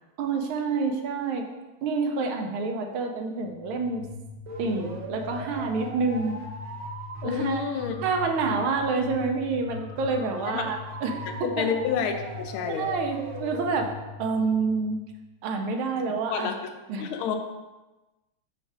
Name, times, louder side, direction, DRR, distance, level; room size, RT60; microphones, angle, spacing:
voice 1, 0.2-1.4 1.8-4.0 4.6-6.4 7.2-7.8 8.0-11.7 12.7-13.9 14.2-15.0 15.4-16.5 16.9-17.1, right 4 dB, 90° right, 4 dB, 1.5 m, -28 dB
sound 1, 3.4-15.3, left 1 dB, 60° right, 1.9 m, -39 dB
voice 2, 7.2-8.0 10.4-10.7 11.2-12.9 16.3-16.5 17.0-17.4, left 7 dB, 90° left, 6 dB, 1.5 m, -29 dB
4.9 x 4.2 x 4.6 m, 1.1 s
omnidirectional pair, 2.3 m